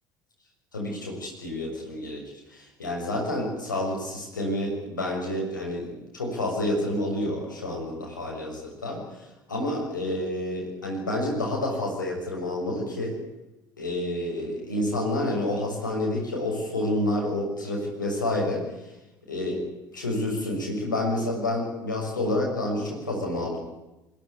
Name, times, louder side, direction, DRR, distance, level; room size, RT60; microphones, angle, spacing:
voice 1, 0.7-2.2 2.5-13.1 13.8-18.9 19.3-19.6 19.9-23.6, left 1 dB, 80° left, -1 dB, 6.7 m, -29 dB
22.5 x 17.0 x 9.6 m, 0.97 s
figure-of-eight pair, 60°, 10 cm